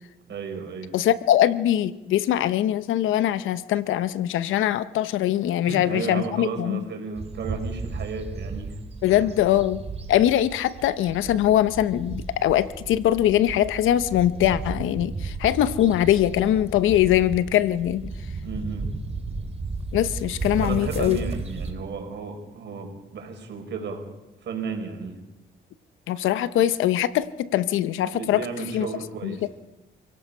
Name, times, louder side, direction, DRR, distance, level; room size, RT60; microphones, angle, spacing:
voice 1, 0.3-0.9 5.6-8.8 9.1-9.2 18.4-18.9 20.6-24.1 24.4-25.2 28.1-29.5, right 5 dB, 65° right, 4 dB, 5.1 m, -33 dB
voice 2, 0.9-6.8 9.0-9.8 10.1-18.1 19.9-21.2 26.1-28.5 28.7-28.9 29.2-29.5, left 12 dB, 85° left, 14 dB, 0.9 m, -22 dB
sound 1, 7.2-21.7, right 3 dB, 30° right, 2.7 m, -34 dB
28.5 x 17.0 x 5.7 m, 1.0 s
cardioid pair, 90°, 20 cm